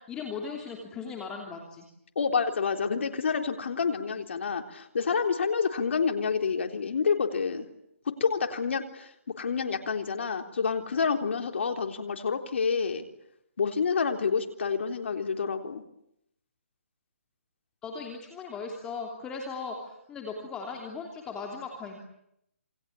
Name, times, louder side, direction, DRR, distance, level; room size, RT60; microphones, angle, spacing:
voice 1, 0.1-1.9 17.8-22.0, left 5 dB, 10° left, 1 dB, 3.1 m, -38 dB
voice 2, 2.2-7.7 8.2-13.1 13.6-15.8, left 5 dB, 60° left, 5 dB, 3.8 m, -28 dB
28.0 x 24.0 x 8.7 m, 0.77 s
hypercardioid pair, 165°, 7 cm